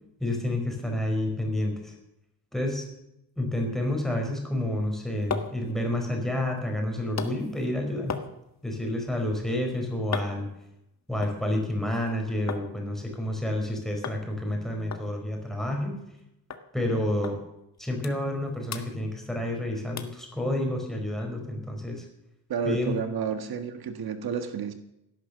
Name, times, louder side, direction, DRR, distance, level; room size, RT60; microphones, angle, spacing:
voice 1, 0.2-1.9 2.5-2.9 3.4-8.2 8.6-10.5 11.1-16.0 16.7-17.4 17.8-22.1 22.6-23.0, left 1 dB, ahead, 1 dB, 4.8 m, -29 dB
sound 1, 4.8-12.7 13.0-13.7 14.0-14.2 14.5-14.6 14.9-16.2 16.5-16.7 17.2-17.4 17.7-18.4 18.7-19.6 20.0-20.2 20.7-20.8, left 6 dB, 45° left, 1.6 m, -39 dB
voice 2, 22.5-24.7, right 6 dB, 75° right, 8 dB, 1.6 m, -30 dB
17.5 x 10.5 x 6.6 m, 0.85 s
cardioid pair, 120°, 37 cm